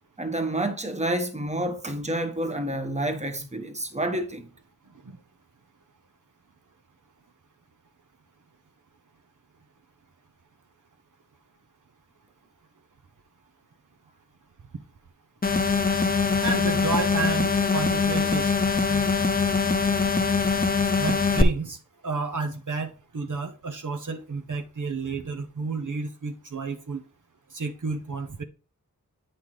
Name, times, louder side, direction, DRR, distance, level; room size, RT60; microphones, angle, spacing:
voice 1, 0.2-4.5, right 1 dB, 20° right, 1.2 m, -29 dB
sound 1, 15.4-21.4, left 4 dB, 25° left, 0.7 m, -23 dB
voice 2, 16.4-18.5 18.9-19.1 21.0-21.8 22.0-27.0 27.5-28.4, right 4 dB, 65° right, 0.9 m, -31 dB
8.7 x 5.7 x 3.2 m
wide cardioid pair, 65°, 34 cm